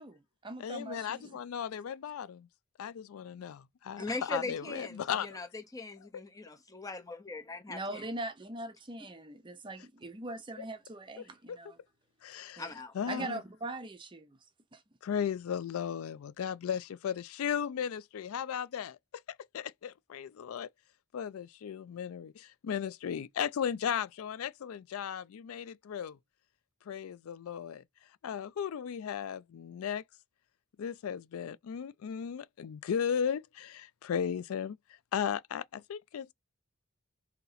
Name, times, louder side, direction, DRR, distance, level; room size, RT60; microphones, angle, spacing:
voice 1, 0.0-1.4 7.7-11.8 12.6-12.7 13.1-14.4 14.7-14.8, right 2 dB, 20° right, 0.6 m, -41 dB
voice 2, 0.6-2.5 2.8-5.4 11.5-11.6 12.2-12.6 12.9-13.4 15.0-19.0 19.5-20.7 21.1-26.2 26.9-27.8 28.2-30.0 30.8-34.8 35.1-36.3, left 8 dB, 75° left, 0.4 m, -36 dB
voice 3, 4.0-8.0 12.6-12.9, left 2 dB, 15° left, 0.7 m, -40 dB
4.0 x 2.8 x 4.0 m
head